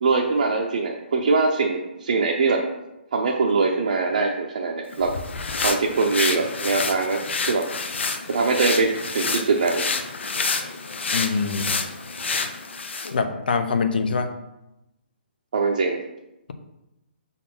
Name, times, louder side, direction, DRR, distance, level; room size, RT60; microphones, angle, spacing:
voice 1, 0.0-2.6 3.1-5.1 5.6-7.2 7.5-7.7 8.3-9.9 15.5-16.0, right 4 dB, 45° right, -1 dB, 0.6 m, -22 dB
sound 1, 4.9-13.2, left 4 dB, 90° left, 0.8 m, -28 dB
voice 2, 11.1-11.8 13.1-14.3, left 4 dB, 55° left, 8 dB, 0.7 m, -24 dB
5.5 x 4.1 x 5.9 m, 0.92 s
hypercardioid pair, 180°, 6 cm